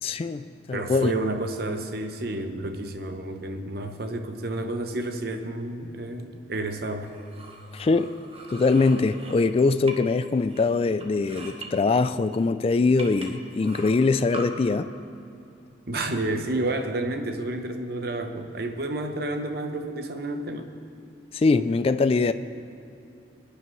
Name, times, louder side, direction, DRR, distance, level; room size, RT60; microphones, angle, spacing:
voice 1, 0.0-1.1 7.7-8.1 8.5-14.9 21.3-22.3, left 3 dB, 30° left, 11 dB, 0.3 m, -22 dB
voice 2, 0.7-7.1 15.9-20.7, right 2 dB, 60° right, 6 dB, 0.9 m, -30 dB
sound 1, 7.0-10.2 10.5-11.7 12.3-12.4 13.0-14.5, right 2 dB, 35° right, 1.2 m, -42 dB
20.5 x 9.9 x 3.2 m, 2.6 s
head